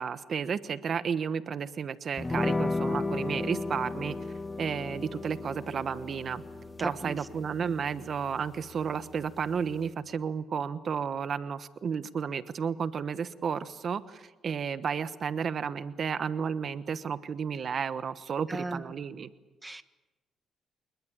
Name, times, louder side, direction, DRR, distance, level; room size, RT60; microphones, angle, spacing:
voice 1, 0.0-4.1 4.6-6.4 6.8-19.3, right 6 dB, 50° right, 13 dB, 1.1 m, -32 dB
sound 1, 2.2-9.9, left 2 dB, 20° left, 1.4 m, -35 dB
voice 2, 18.5-18.8 19.6-19.8, right 2 dB, 15° right, 11 dB, 1.5 m, -36 dB
27.0 x 20.5 x 8.6 m, 1.2 s
cardioid pair, 90°, 0 cm